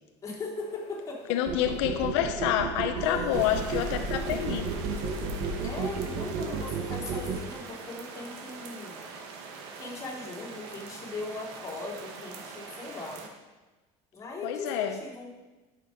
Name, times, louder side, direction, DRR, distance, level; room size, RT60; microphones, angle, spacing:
voice 1, 0.2-1.4 2.9-3.4 5.6-9.1 9.8-13.3 14.1-15.3, left 2 dB, 20° left, -6 dB, 3.5 m, -39 dB
sound 1, 0.5-5.6, left 5 dB, 45° left, 1.3 m, -41 dB
voice 2, 1.3-4.7 14.4-15.0, left 11 dB, 90° left, 7 dB, 0.7 m, -28 dB
sound 2, 1.5-7.4, right 7 dB, 55° right, 1.3 m, -32 dB
sound 3, 3.3-13.3, right 4 dB, 85° right, 1.5 m, -43 dB
11.5 x 6.7 x 5.1 m, 1.2 s
cardioid pair, 135°, 14 cm